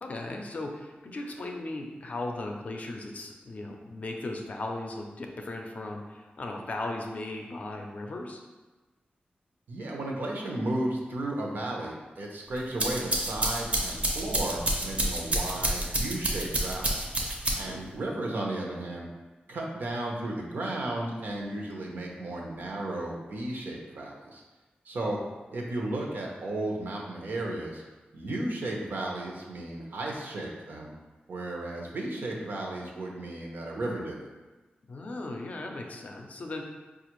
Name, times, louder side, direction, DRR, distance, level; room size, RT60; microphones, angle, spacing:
voice 1, 0.0-8.4 17.6-17.8 34.9-36.6, left 2 dB, 45° left, 2 dB, 0.4 m, -37 dB
voice 2, 9.7-17.0 17.5-19.1 19.5-24.4 24.8-25.2 25.5-27.8 28.1-30.9 31.3-34.3, right 1 dB, 75° right, -1 dB, 0.7 m, -34 dB
sound 1, 12.6-17.9, right 1 dB, 40° right, 0.6 m, -29 dB
4.9 x 2.4 x 3.0 m, 1.2 s
wide cardioid pair, 150°, 3 cm